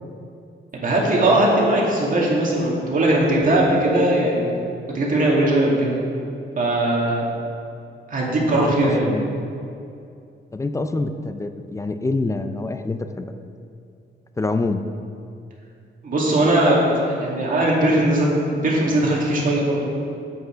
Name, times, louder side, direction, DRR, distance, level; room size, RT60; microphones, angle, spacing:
voice 1, 0.7-4.5 4.9-6.0 6.6-7.2 8.1-9.1 16.0-19.8, right 1 dB, 45° right, -4 dB, 2.2 m, -19 dB
voice 2, 8.5-9.4 10.5-13.3 14.4-14.8, left 3 dB, 15° left, 8 dB, 0.4 m, -26 dB
8.0 x 7.9 x 5.0 m, 2.5 s
wide cardioid pair, 130°, 19 cm